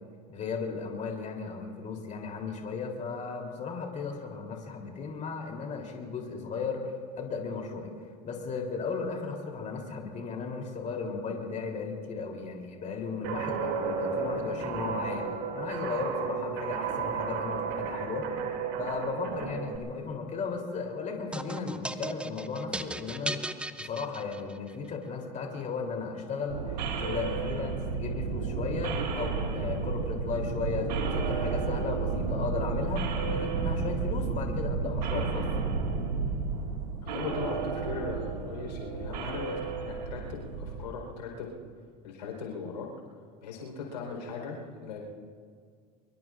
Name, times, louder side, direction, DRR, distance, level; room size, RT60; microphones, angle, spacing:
voice 1, 0.3-6.9 7.2-7.9 8.2-15.2 15.5-18.3 18.8-35.4, left 5 dB, 35° left, 1 dB, 3.3 m, -35 dB
Guitar, 13.2-19.8, right 6 dB, 70° right, 2.6 m, -33 dB
sound 1, 21.3-24.7, right 1 dB, 5° right, 0.6 m, -37 dB
sound 2, 26.5-40.8, right 5 dB, 90° right, 2.0 m, -32 dB
voice 2, 37.0-41.5 42.0-42.9 43.4-45.0, left 5 dB, 90° left, -1 dB, 4.2 m, -38 dB
24.5 x 23.5 x 2.5 m, 2.1 s
hypercardioid pair, 90°, 21 cm